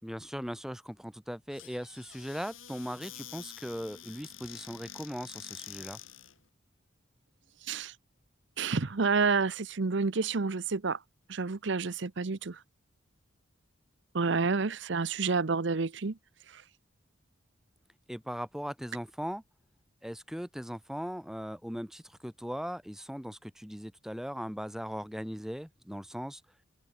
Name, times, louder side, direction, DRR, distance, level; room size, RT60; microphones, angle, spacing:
voice 1, 0.0-6.0 18.1-19.4 20.0-26.4, equal, ahead, 3.9 m, -39 dB
Squeak / Cupboard open or close, 1.5-6.4, left 11 dB, 75° left, 5.4 m, -48 dB
voice 2, 8.6-11.0 11.3-12.6 14.1-16.2, right 4 dB, 60° right, 0.8 m, -29 dB
open air
head